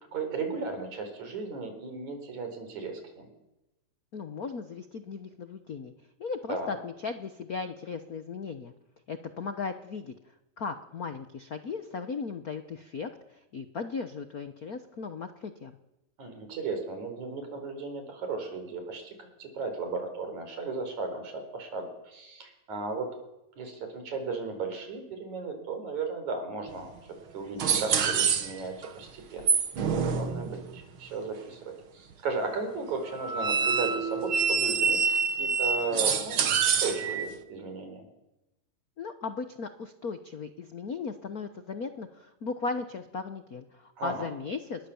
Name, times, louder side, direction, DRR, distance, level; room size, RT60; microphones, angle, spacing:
voice 1, 0.1-3.3 6.5-6.8 16.2-23.1 23.6-29.5 30.1-35.1 35.4-38.0 44.0-44.3, right 4 dB, 80° right, 6 dB, 5.7 m, -35 dB
voice 2, 4.1-5.9 6.2-8.7 9.1-10.1 10.6-15.7 39.0-44.9, left 4 dB, 75° left, 8 dB, 0.8 m, -37 dB
sound 1, 26.8-26.9 27.6-28.9 29.4-30.8 33.1-37.3, right 6 dB, 50° right, 1.9 m, -26 dB
28.0 x 21.0 x 7.1 m, 0.94 s
omnidirectional pair, 3.3 m